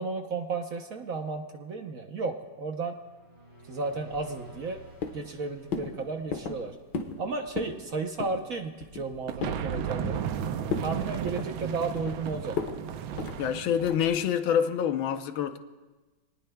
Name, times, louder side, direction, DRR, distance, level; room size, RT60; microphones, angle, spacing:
voice 1, 0.0-2.9 3.7-4.8 5.1-6.7 7.2-10.2 10.8-12.5, right 4 dB, 55° right, 1.1 m, -33 dB
sound 1, 3.0-6.8, equal, 15° right, 2.7 m, -52 dB
sound 2, 4.1-4.7 5.0-5.4 5.7-5.9 6.3-6.6 6.9-7.2 7.5-7.8 8.2-8.4 8.8-9.6 10.0-10.4 10.7-10.9 11.3-12.2 12.6-12.8 13.2-13.4 13.8-14.1, left 5 dB, 65° left, 1.8 m, -34 dB
sound 3, 9.3-14.3, right 8 dB, 85° right, 1.5 m, -34 dB
voice 2, 13.4-15.6, left 8 dB, 85° left, 1.5 m, -26 dB
26.0 x 19.0 x 2.3 m
omnidirectional pair, 2.1 m